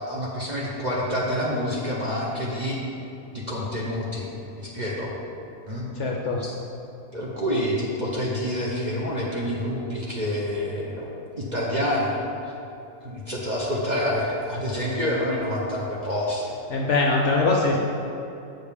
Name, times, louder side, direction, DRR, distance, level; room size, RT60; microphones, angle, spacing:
voice 1, 0.0-2.8 3.3-4.3 4.6-5.1 5.7-5.9 6.4-6.6 7.1-11.1 11.4-12.2 13.0-16.5, equal, 35° right, -5 dB, 0.8 m, -27 dB
voice 2, 6.0-6.4 16.7-17.8, left 3 dB, 60° left, 0 dB, 0.8 m, -22 dB
7.7 x 6.6 x 3.5 m, 2.9 s
omnidirectional pair, 1.7 m